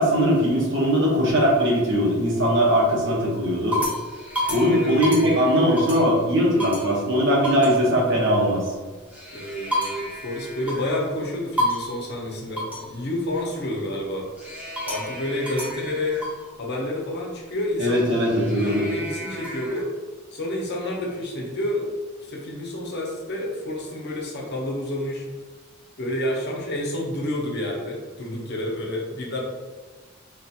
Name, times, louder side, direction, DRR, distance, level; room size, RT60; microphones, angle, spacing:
voice 1, 0.0-3.8 4.5-8.7 17.8-18.9, equal, 60° right, -4 dB, 1.1 m, -20 dB
sound 1, 2.7-2.9 3.4-6.2 6.6-6.9 7.4-7.8 8.9-11.1 11.6-12.0 12.6-12.9 14.4-16.5 17.8-19.8, equal, 5° right, 0.7 m, -31 dB
voice 2, 4.6-5.3 9.3-14.3 14.9-16.2 16.6-18.1 18.5-19.9 20.3-21.9 22.2-25.2 26.0-29.4, left 1 dB, 55° left, -2 dB, 0.8 m, -29 dB
3.9 x 2.4 x 2.8 m, 1.4 s
head